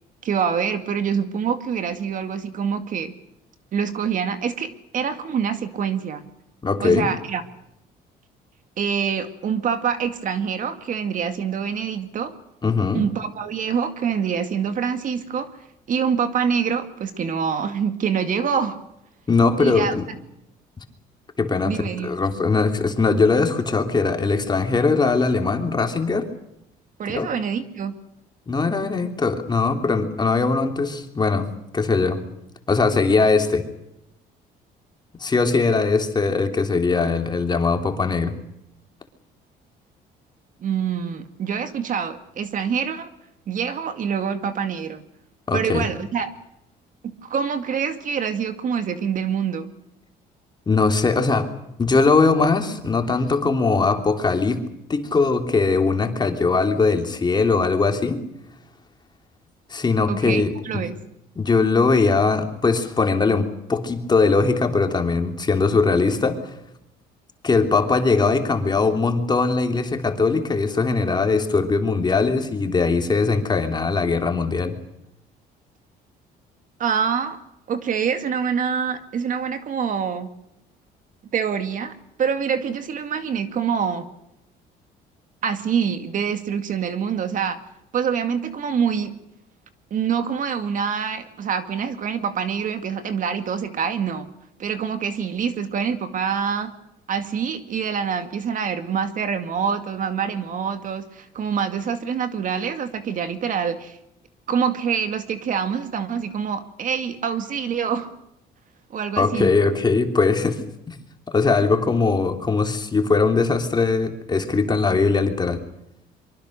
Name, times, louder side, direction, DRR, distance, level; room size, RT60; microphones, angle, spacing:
voice 1, 0.2-3.1 3.7-6.2 6.8-7.4 8.8-12.3 12.9-15.5 15.9-18.8 19.6-19.9 21.6-22.2 27.0-27.9 40.6-43.1 43.5-45.0 45.5-46.3 47.0-49.7 60.1-61.0 76.8-77.4 77.7-80.3 81.3-84.1 85.4-87.6 87.9-89.1 89.9-94.3 94.6-96.7 97.1-104.0 104.5-108.1 108.9-109.5, right 7 dB, 50° right, 9 dB, 2.2 m, -25 dB
voice 2, 6.6-7.1 12.6-13.0 19.3-20.1 21.4-21.8 22.0-26.3 27.1-27.3 28.5-31.5 31.7-32.2 32.7-33.6 35.2-38.3 45.5-45.9 50.7-51.5 51.8-58.2 59.7-60.8 61.4-66.5 67.4-74.7 109.2-110.6 110.9-111.0 111.3-115.6, left 4 dB, 25° left, 5 dB, 3.2 m, -20 dB
24.0 x 24.0 x 6.6 m, 0.81 s
cardioid pair, 110°, 17 cm